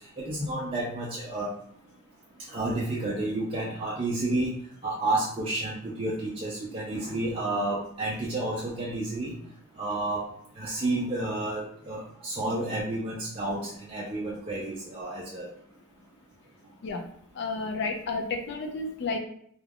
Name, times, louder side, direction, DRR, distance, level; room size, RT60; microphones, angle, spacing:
voice 1, 0.2-1.5 2.5-4.5 4.8-9.4 9.8-10.2 10.6-15.5, right 2 dB, 25° right, -6 dB, 0.4 m, -30 dB
voice 2, 17.3-19.2, left 3 dB, 50° left, 3 dB, 0.4 m, -31 dB
2.3 x 2.2 x 3.4 m, 0.65 s
head